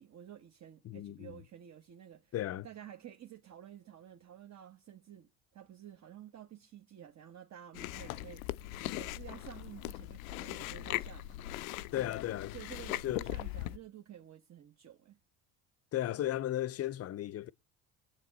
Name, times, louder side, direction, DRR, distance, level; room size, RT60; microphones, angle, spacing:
voice 1, 0.0-2.3 2.6-8.5 8.9-11.4 11.9-12.2 12.5-15.2, right 10 dB, 40° right, 1.2 m, -51 dB
voice 2, 0.8-1.4 2.3-2.7 11.9-12.6 13.0-13.3 15.9-17.5, left 13 dB, 35° left, 0.6 m, -35 dB
Chewing mastication, 7.7-13.8, left 16 dB, 75° left, 0.6 m, -40 dB
21.5 x 7.8 x 4.0 m
hypercardioid pair, 60°, 42 cm